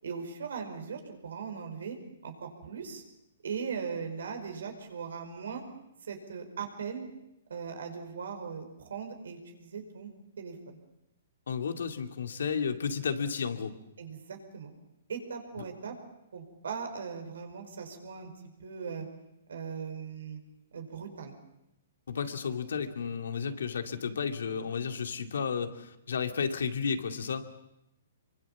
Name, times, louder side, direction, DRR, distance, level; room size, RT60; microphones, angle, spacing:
voice 1, 0.0-2.0 2.2-3.0 3.4-5.6 6.0-7.1 7.5-10.8 14.0-14.7 15.1-16.0 16.3-18.3 18.6-19.1 19.5-20.4 20.7-21.3, right 6 dB, 80° right, 5 dB, 5.1 m, -39 dB
voice 2, 11.5-13.7 22.1-27.5, left 6 dB, 75° left, 6 dB, 2.4 m, -32 dB
25.0 x 23.5 x 7.4 m, 0.87 s
hypercardioid pair, 145°, 0 cm